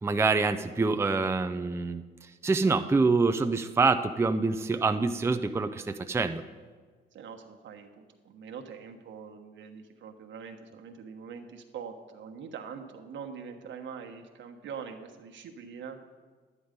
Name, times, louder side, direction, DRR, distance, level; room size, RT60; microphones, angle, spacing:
voice 1, 0.0-2.0 2.4-6.4, right 4 dB, 15° right, 8 dB, 0.5 m, -26 dB
voice 2, 7.1-16.0, right 6 dB, 70° right, 4 dB, 1.2 m, -43 dB
11.0 x 9.6 x 5.1 m, 1.5 s
cardioid pair, 90°, 20 cm